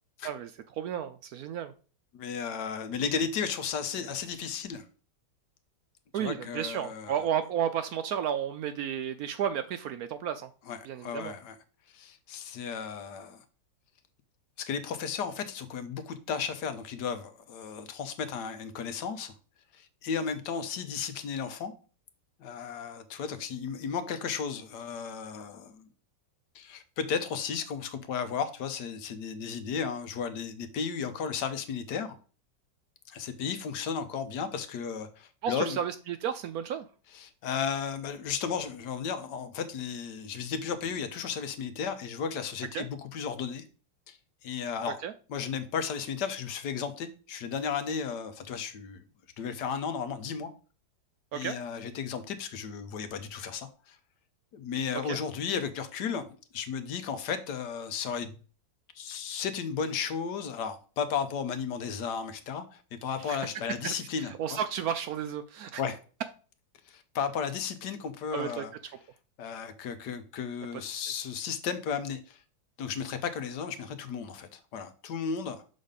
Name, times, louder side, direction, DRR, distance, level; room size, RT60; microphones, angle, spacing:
voice 1, 0.2-1.7 6.1-10.5 10.8-11.3 35.4-36.9 42.7-42.8 44.9-45.1 51.3-51.6 54.9-55.2 63.2-63.5 63.8-65.8 68.3-68.6 70.7-70.8, right 9 dB, 70° right, 0.9 m, -33 dB
voice 2, 2.1-4.8 6.1-7.1 10.7-11.6 11.9-13.4 14.7-19.3 19.7-21.7 22.4-25.9 26.5-32.2 33.1-35.8 37.1-43.6 44.1-44.2 44.4-45.0 45.3-49.0 49.4-50.5 51.3-54.0 54.5-56.3 56.5-58.4 58.9-64.6 65.8-66.0 66.9-68.7 69.4-72.4 72.8-75.6, left 6 dB, 75° left, 1.4 m, -34 dB
6.4 x 4.1 x 5.1 m
omnidirectional pair, 1.9 m